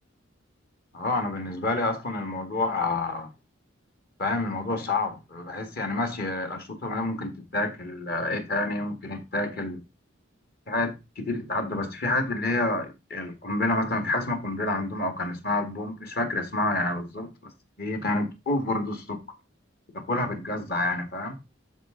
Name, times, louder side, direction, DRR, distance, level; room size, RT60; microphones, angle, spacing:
voice 1, 0.9-3.3 4.2-9.8 10.7-17.5 17.8-19.2 19.9-21.4, left 2 dB, 50° left, 1.9 m, -28 dB
12.0 x 4.4 x 3.8 m
head